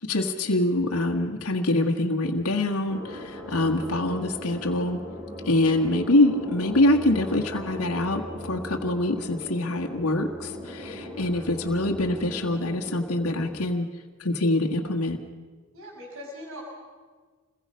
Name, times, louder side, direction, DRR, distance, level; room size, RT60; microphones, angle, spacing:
voice 1, 0.0-5.0 5.4-13.9 14.2-15.2, left 1 dB, 75° left, 2 dB, 1.7 m, -25 dB
sound 1, 2.9-13.6, equal, 30° right, 4.4 m, -38 dB
voice 2, 15.7-16.6, equal, 65° right, -1 dB, 5.8 m, -41 dB
28.0 x 21.5 x 5.6 m, 1.5 s
head